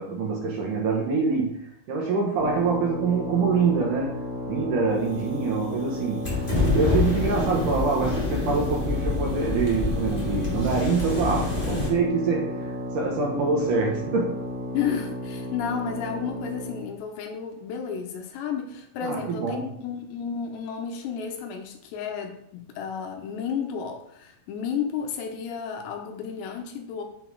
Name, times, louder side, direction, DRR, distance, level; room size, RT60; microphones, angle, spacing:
voice 1, 0.0-4.1 4.5-6.3 6.7-14.4 19.0-19.7, right 4 dB, 65° right, -1 dB, 2.3 m, -25 dB
sound 1, 2.4-16.9, left 1 dB, 50° right, 1.0 m, -34 dB
sound 2, 6.2-11.9, left 3 dB, 15° left, 2.2 m, -27 dB
voice 2, 14.7-27.0, left 7 dB, 85° left, 4 dB, 3.2 m, -32 dB
7.4 x 6.1 x 4.7 m, 0.72 s
omnidirectional pair, 4.9 m